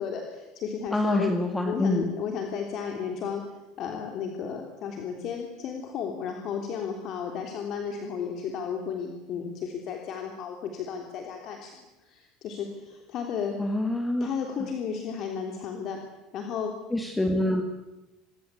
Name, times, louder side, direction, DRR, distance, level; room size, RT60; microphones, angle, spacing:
voice 1, 0.0-1.3 1.6-13.6 14.2-16.1 16.3-16.8, left 7 dB, 45° left, 3 dB, 3.3 m, -33 dB
voice 2, 0.9-2.1 13.6-14.3 16.9-17.6, left 1 dB, 5° left, 6 dB, 1.9 m, -26 dB
27.0 x 23.0 x 8.4 m, 1.0 s
cardioid pair, 155°, 0 cm